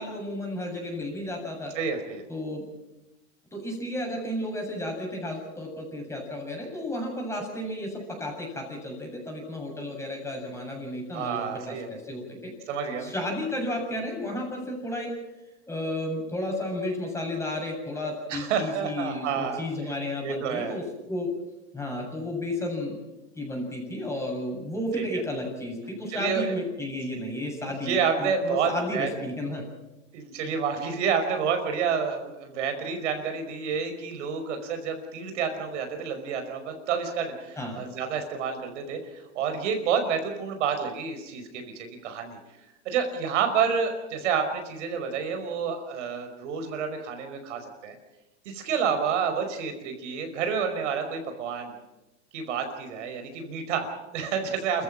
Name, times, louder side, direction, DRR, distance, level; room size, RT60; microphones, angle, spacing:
voice 1, 0.0-1.8 2.3-2.7 3.5-12.5 13.0-15.1 15.7-21.3 21.7-23.0 23.4-29.6 30.4-30.5 37.6-37.8, left 1 dB, 10° left, 1 dB, 7.5 m, -33 dB
voice 2, 1.7-2.2 11.1-11.9 12.7-13.1 18.3-19.6 20.2-20.7 25.0-25.1 26.1-26.5 27.8-29.1 30.1-39.0 39.4-42.4 42.9-47.9 48.5-51.7 52.3-54.8, right 6 dB, 75° right, 7 dB, 5.3 m, -29 dB
28.5 x 14.5 x 7.6 m, 1.0 s
supercardioid pair, 125°, 36 cm